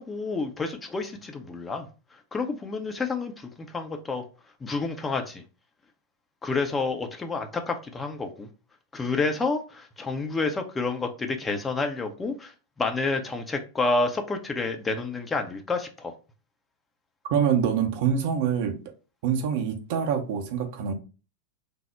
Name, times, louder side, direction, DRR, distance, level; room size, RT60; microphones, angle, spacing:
voice 1, 0.0-1.9 2.3-4.2 4.6-5.4 6.4-8.5 8.9-12.5 12.8-16.1, left 3 dB, 15° left, 0.5 m, -29 dB
voice 2, 17.3-18.8 19.2-20.9, right 7 dB, 50° right, 0.6 m, -25 dB
3.4 x 2.0 x 4.2 m
figure-of-eight pair, 90°, 0 cm